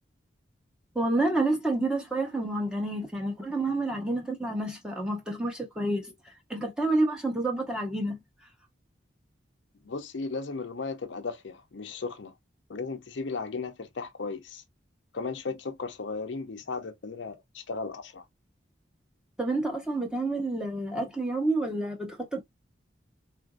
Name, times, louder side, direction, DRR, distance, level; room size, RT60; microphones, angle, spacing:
voice 1, 0.9-6.1 6.5-8.2 19.4-22.4, right 2 dB, 5° right, 0.8 m, -29 dB
voice 2, 9.8-12.3 12.7-14.6 15.1-18.2, left 4 dB, 75° left, 0.6 m, -35 dB
3.9 x 2.5 x 2.2 m
head